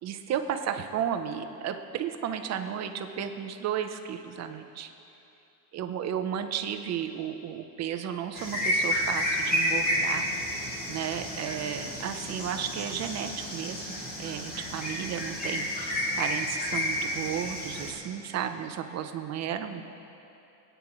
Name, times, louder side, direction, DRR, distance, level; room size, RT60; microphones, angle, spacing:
voice 1, 0.0-4.9 5.7-10.2 10.9-19.8, right 9 dB, 40° right, 7 dB, 0.8 m, -33 dB
sound 1, 8.3-17.9, equal, 20° left, 2.5 m, -31 dB
24.0 x 9.3 x 3.1 m, 2.8 s
cardioid pair, 145°, 42 cm